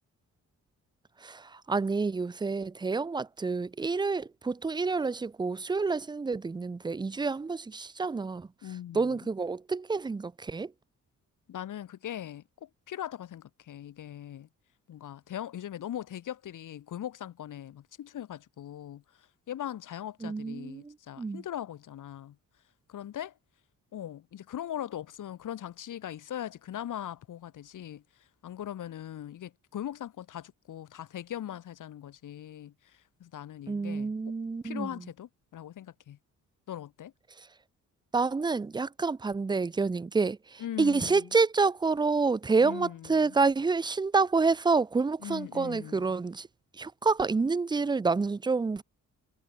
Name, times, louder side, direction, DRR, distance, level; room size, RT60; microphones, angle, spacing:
voice 1, 1.2-8.5 8.9-10.7 20.2-21.4 33.7-34.9 38.1-46.5 46.7-48.8, right 4 dB, 15° right, 0.5 m, -28 dB
voice 2, 8.6-9.3 11.5-14.5 14.9-22.4 22.9-23.3 23.9-34.1 34.6-36.2 36.7-37.1 40.6-41.3 42.6-43.3 45.2-46.1, left 11 dB, 75° left, 4.4 m, -40 dB
wide cardioid pair, 155°, 32 cm